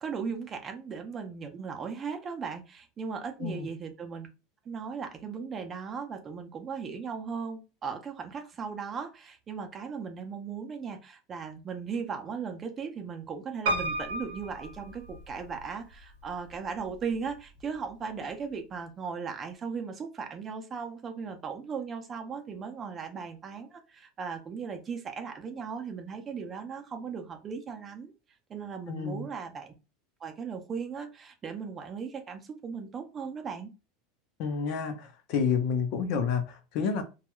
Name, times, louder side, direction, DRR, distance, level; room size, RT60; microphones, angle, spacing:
voice 1, 0.0-4.3 4.7-28.1 28.5-29.7 30.2-33.7, right 6 dB, 30° right, 0.5 m, -37 dB
Piano, 13.7-15.6 16.3-17.0 17.3-17.4 17.6-17.7, right 2 dB, 80° right, 0.7 m, -33 dB
voice 2, 28.9-29.3 34.4-37.0, left 6 dB, 60° left, 0.6 m, -29 dB
2.3 x 2.2 x 2.9 m
supercardioid pair, 125°, 0 cm